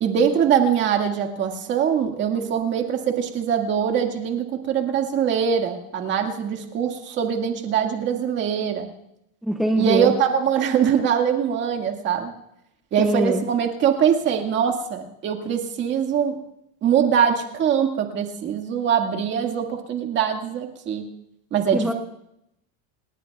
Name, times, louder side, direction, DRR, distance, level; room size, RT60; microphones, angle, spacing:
voice 1, 0.0-8.9 9.8-12.3 12.9-16.4 16.8-21.1 21.5-21.9, right 8 dB, 30° right, 3 dB, 1.9 m, -22 dB
voice 2, 9.4-10.1 13.0-13.4 21.7-21.9, equal, ahead, 1 dB, 0.5 m, -22 dB
28.0 x 19.5 x 2.4 m, 0.78 s
cardioid pair, 175°, 39 cm